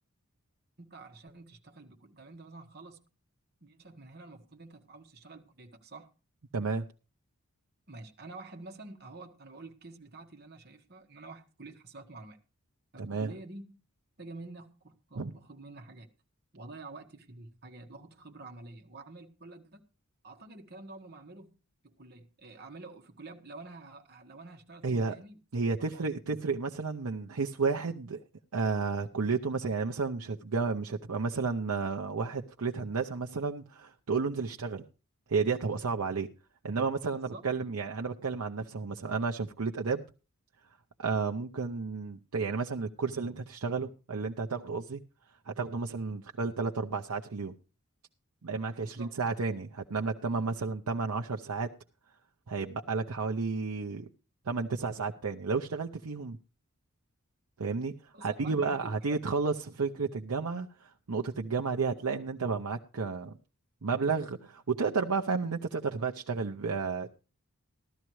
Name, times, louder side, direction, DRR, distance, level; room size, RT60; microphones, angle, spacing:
voice 1, 0.8-3.0 3.6-6.1 7.9-12.4 12.9-13.8 14.2-16.1 16.5-19.9 20.2-21.5 21.8-25.4 25.9-26.1 37.1-37.4 48.8-49.1 58.1-59.2, right 2 dB, 45° right, 1.3 m, -48 dB
voice 2, 6.5-6.8 13.0-13.3 15.2-15.3 24.8-25.2 25.5-28.2 28.5-34.8 35.3-36.3 36.6-40.0 41.0-45.0 45.5-47.5 48.4-51.7 52.5-54.1 54.5-56.4 57.6-63.3 63.8-67.2, right 4 dB, 80° right, 0.7 m, -32 dB
15.0 x 12.5 x 3.1 m
head